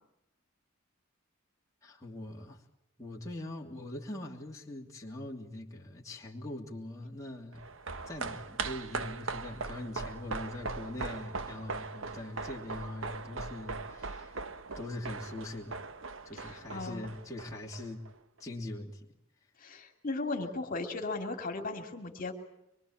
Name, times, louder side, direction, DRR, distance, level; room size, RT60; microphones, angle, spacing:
voice 1, 1.8-2.6 3.0-7.6 8.1-14.4 14.8-15.8 16.2-18.0 18.4-19.1, left 1 dB, 15° left, -3 dB, 2.8 m, -42 dB
sound 1, 7.5-18.1 18.4-18.5, right 4 dB, 65° right, 1.2 m, -40 dB
voice 2, 16.4-17.0 19.6-22.3, left 3 dB, 40° left, 5 dB, 3.0 m, -36 dB
25.0 x 23.5 x 8.8 m, 0.82 s
head